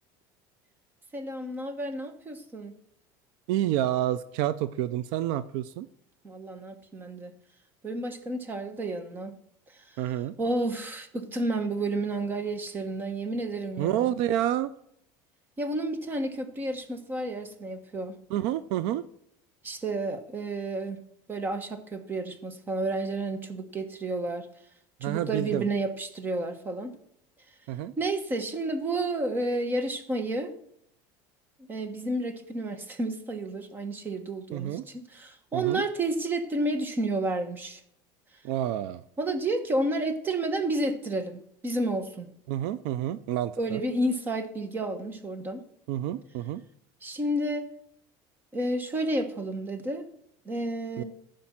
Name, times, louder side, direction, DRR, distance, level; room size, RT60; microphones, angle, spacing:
voice 1, 1.1-2.7 6.2-7.3 7.8-9.4 9.7-10.0 10.4-14.1 15.6-18.2 19.6-21.0 21.3-24.5 25.0-27.0 28.0-30.5 31.6-37.8 39.2-42.3 43.6-45.6 47.0-47.7 48.5-50.1 50.4-51.0, right 2 dB, 20° right, 10 dB, 1.3 m, -31 dB
voice 2, 3.5-5.9 10.0-10.3 13.8-14.7 18.3-19.0 25.0-25.6 27.7-27.9 34.5-34.8 35.5-35.8 38.4-39.0 42.5-43.8 45.9-46.6 51.0-51.1, right 12 dB, 65° right, 15 dB, 0.5 m, -29 dB
15.0 x 5.2 x 7.3 m, 0.72 s
cardioid pair, 150°, 10 cm